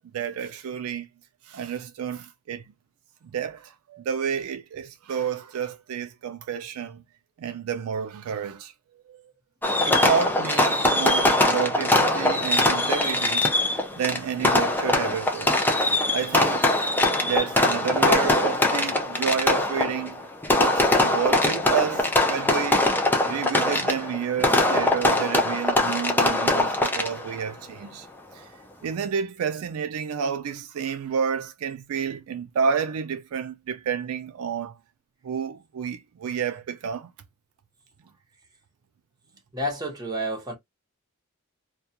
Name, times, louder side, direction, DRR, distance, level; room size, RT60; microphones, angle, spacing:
voice 1, 0.1-1.1 1.5-2.6 3.3-7.0 7.4-8.7 9.1-9.2 9.8-15.5 16.1-16.8 17.2-20.2 20.5-22.9 23.2-28.1 28.3-28.5 28.8-34.8 35.2-37.1, right 7 dB, 70° right, 0.3 m, -30 dB
Fireworks, 9.6-27.4, left 1 dB, 10° left, 0.4 m, -22 dB
voice 2, 39.5-40.5, equal, 15° right, 0.9 m, -29 dB
2.3 x 2.3 x 2.7 m
head